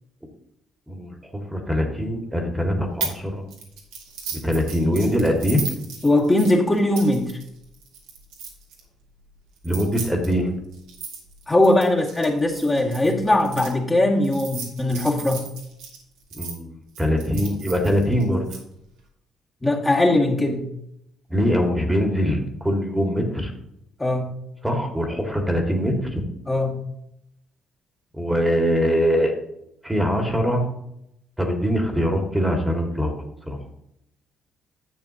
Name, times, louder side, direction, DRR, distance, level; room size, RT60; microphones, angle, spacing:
voice 1, 0.9-3.5 4.3-5.6 9.6-10.5 16.3-18.4 21.3-23.5 24.6-26.1 28.1-29.3 29.8-30.6 31.4-33.6, equal, 10° right, 2 dB, 2.1 m, -23 dB
sound 1, 3.0-3.2 3.5-8.8 9.6-13.7 14.2-16.5 17.0-18.6, right 6 dB, 70° right, 2.1 m, -35 dB
voice 2, 6.0-7.3 11.5-15.4 19.6-20.6 24.0-24.3 26.5-26.7, left 1 dB, 20° left, -2 dB, 2.2 m, -20 dB
11.5 x 8.6 x 2.9 m, 0.80 s
figure-of-eight pair, 45°, 0 cm